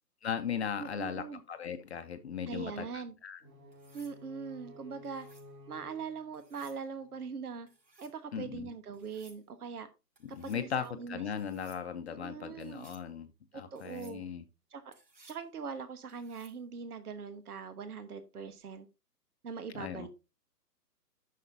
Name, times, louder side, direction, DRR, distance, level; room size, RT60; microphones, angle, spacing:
voice 1, 0.2-3.4 8.3-8.7 10.3-13.3 13.5-14.4 19.8-20.1, left 7 dB, 40° left, 8 dB, 0.8 m, -38 dB
voice 2, 0.8-1.4 2.5-3.1 3.9-5.3 5.7-7.7 8.0-9.9 10.4-11.2 12.1-12.9 13.5-14.2 14.7-14.9 15.3-18.9 19.4-20.1, right 5 dB, 65° right, 10 dB, 1.3 m, -42 dB
sound 1, 3.4-7.4, left 1 dB, 25° right, 2.7 m, -54 dB
sound 2, 3.7-4.2 5.0-5.5 6.3-6.8 7.7-8.2 8.9-9.4 10.2-10.6 11.4-11.8 12.6-13.1 13.8-14.2 14.9-15.4 16.1-16.6 18.5-18.8, right 2 dB, 80° right, 5.5 m, -61 dB
10.5 x 6.6 x 2.7 m, 0.27 s
figure-of-eight pair, 135°, 49 cm